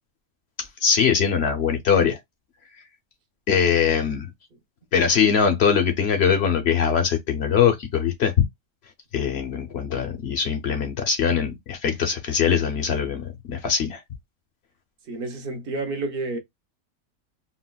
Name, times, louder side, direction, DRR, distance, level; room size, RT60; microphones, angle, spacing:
voice 1, 0.8-2.2 3.5-4.3 4.9-8.3 9.1-14.0, left 7 dB, 60° left, 0.8 m, -22 dB
voice 2, 15.1-16.4, right 2 dB, 50° right, 0.8 m, -29 dB
3.8 x 2.1 x 2.2 m
omnidirectional pair, 1.4 m